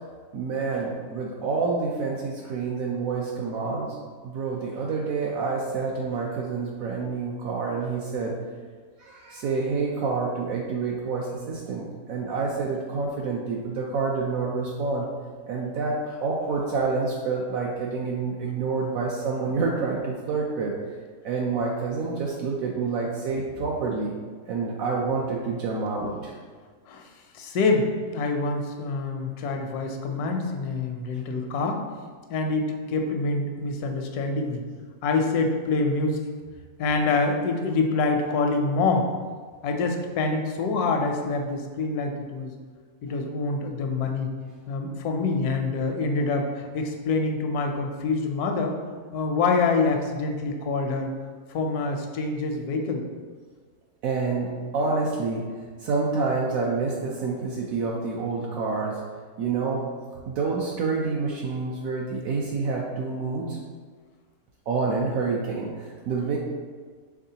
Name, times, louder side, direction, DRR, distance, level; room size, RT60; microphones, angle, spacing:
voice 1, 0.3-4.0 4.2-8.3 9.0-15.1 15.5-20.7 21.2-24.1 24.5-26.3 54.0-55.5 55.8-59.0 59.4-59.8 60.3-63.6 64.7-66.4, right 4 dB, 70° right, -2 dB, 1.0 m, -28 dB
voice 2, 27.3-31.8 32.3-34.6 35.0-36.2 36.8-39.1 39.6-42.5 43.0-44.3 44.7-48.8 49.1-51.1 51.5-53.1, left 3 dB, 85° left, 4 dB, 1.1 m, -26 dB
4.7 x 3.6 x 2.8 m, 1.5 s
omnidirectional pair, 1.6 m